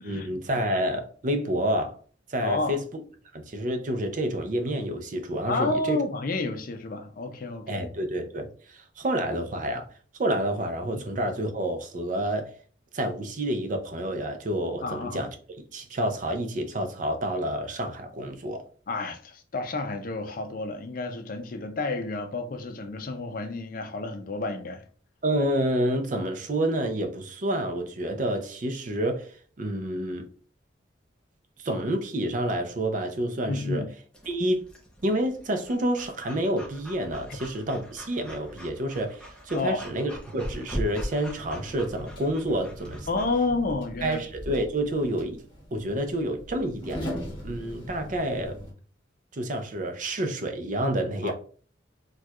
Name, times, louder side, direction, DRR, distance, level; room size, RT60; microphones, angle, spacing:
voice 1, 0.0-2.0 2.3-2.8 3.3-6.0 7.7-9.9 10.2-12.5 12.9-15.3 15.7-18.7 25.2-30.3 31.6-33.8 34.3-34.7 35.0-43.1 44.0-45.4 45.7-47.1 47.4-48.6 49.3-51.3, right 1 dB, 45° right, 0.5 m, -29 dB
voice 2, 2.4-2.8 5.5-7.8 10.9-11.0 14.8-15.2 18.9-24.8 33.5-33.9 39.5-39.8 43.1-44.2 51.2-51.3, left 3 dB, 50° left, 0.5 m, -30 dB
Breathing / Dog, 34.1-43.3, equal, 5° left, 0.6 m, -41 dB
sound 1, 41.4-48.7, equal, 30° left, 1.2 m, -40 dB
4.4 x 2.3 x 2.3 m
head